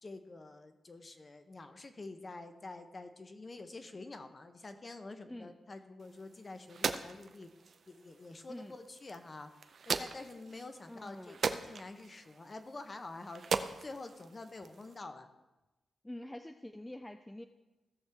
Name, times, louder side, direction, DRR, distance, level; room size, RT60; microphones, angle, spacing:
voice 1, 0.0-7.5 7.9-9.5 9.9-15.3, left 2 dB, 35° left, 8 dB, 0.9 m, -47 dB
sound 1, 6.0-15.0, right 5 dB, 60° right, 0.5 m, -40 dB
voice 2, 10.9-11.4 16.0-17.4, left 1 dB, 10° left, 7 dB, 0.4 m, -46 dB
16.5 x 6.4 x 3.5 m, 1.1 s
cardioid pair, 95°, 0 cm